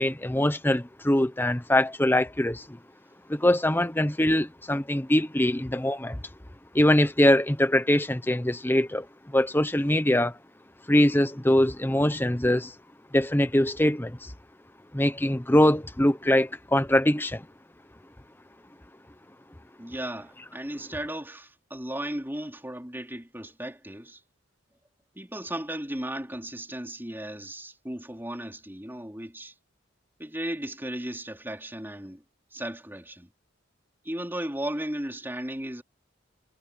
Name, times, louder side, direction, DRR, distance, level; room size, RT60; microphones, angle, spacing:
voice 1, 0.0-2.8 3.3-6.2 6.7-10.4 10.9-12.7 13.1-14.3 14.9-17.5, left 1 dB, 10° left, 0.9 m, -23 dB
voice 2, 19.8-24.2 25.2-29.5 30.2-32.2 32.5-33.3 34.0-35.8, right 1 dB, 10° right, 4.1 m, -35 dB
head